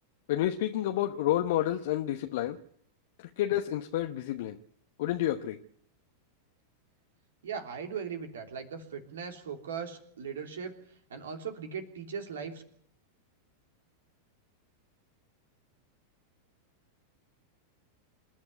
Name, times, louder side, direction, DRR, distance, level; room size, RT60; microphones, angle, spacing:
voice 1, 0.3-2.6 3.2-4.6 5.0-5.6, left 13 dB, 55° left, 1.0 m, -29 dB
voice 2, 7.4-10.8 11.1-12.6, right 6 dB, 65° right, 3.2 m, -39 dB
27.5 x 11.0 x 9.5 m
figure-of-eight pair, 90°, 0 cm